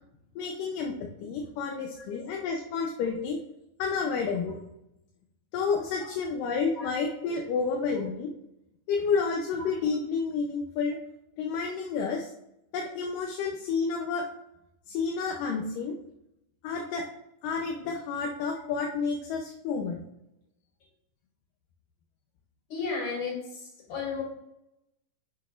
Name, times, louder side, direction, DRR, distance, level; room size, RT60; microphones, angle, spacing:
voice 1, 0.4-1.0 1.2-3.4 3.8-4.6 5.5-8.3 8.9-11.0 11.4-12.3 12.7-14.2 14.9-16.0 16.6-17.0 17.4-20.0, left 5 dB, 85° left, 0 dB, 2.4 m, -30 dB
voice 2, 22.7-24.2, left 5 dB, 60° left, -2 dB, 3.8 m, -34 dB
10.5 x 6.3 x 2.5 m, 0.84 s
omnidirectional pair, 3.8 m